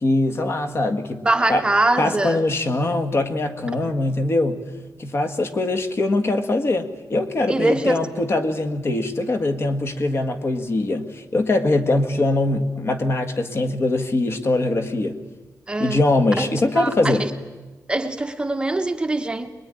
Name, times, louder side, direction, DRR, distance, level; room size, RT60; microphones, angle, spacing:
voice 1, 0.0-1.2 1.5-1.6 2.0-4.6 5.0-15.2 15.8-17.3, left 2 dB, 40° left, 1.8 m, -22 dB
voice 2, 1.2-2.4 3.8-3.9 7.5-8.0 15.7-16.0 16.4-16.5 16.7-17.3 17.9-19.5, right 2 dB, 15° right, 1.0 m, -23 dB
23.5 x 21.5 x 9.9 m
wide cardioid pair, 180°, 7 cm